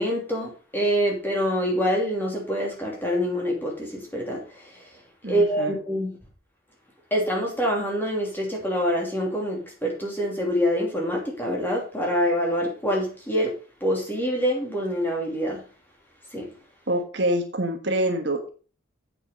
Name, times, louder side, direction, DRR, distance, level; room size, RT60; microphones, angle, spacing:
voice 1, 0.0-5.0 5.3-6.2 7.1-15.6 16.3-16.5, equal, 10° left, 2.8 m, -26 dB
voice 2, 5.2-5.8 16.9-18.5, right 1 dB, 55° right, 1.4 m, -26 dB
8.4 x 6.9 x 5.2 m
head